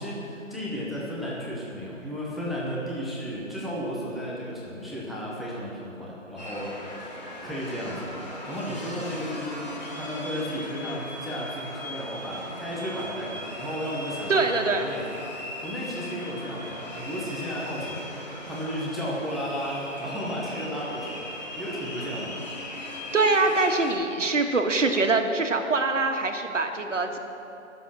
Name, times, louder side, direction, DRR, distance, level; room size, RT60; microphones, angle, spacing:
voice 1, 0.0-6.7 7.4-15.1 15.4-22.4, equal, ahead, -6 dB, 0.6 m, -34 dB
sound 1, 6.4-23.9, left 1 dB, 30° left, 2.6 m, -38 dB
voice 2, 14.3-14.9 23.1-27.2, right 3 dB, 65° right, 4 dB, 1.6 m, -24 dB
20.5 x 7.0 x 6.1 m, 2.8 s
figure-of-eight pair, 170°, 40 cm